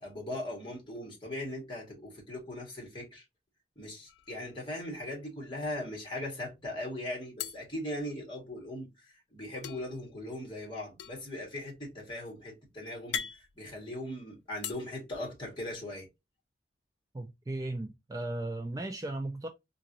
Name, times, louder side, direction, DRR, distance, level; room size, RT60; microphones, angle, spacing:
voice 1, 0.0-3.2 3.8-16.1, left 1 dB, 30° left, 1.8 m, -39 dB
sound 1, 4.1-5.0 5.3-5.4 5.7-6.5 7.4-8.7 9.6-14.7, left 8 dB, 80° left, 0.4 m, -42 dB
voice 2, 17.1-19.5, right 2 dB, 20° right, 0.4 m, -36 dB
3.8 x 2.5 x 2.9 m
head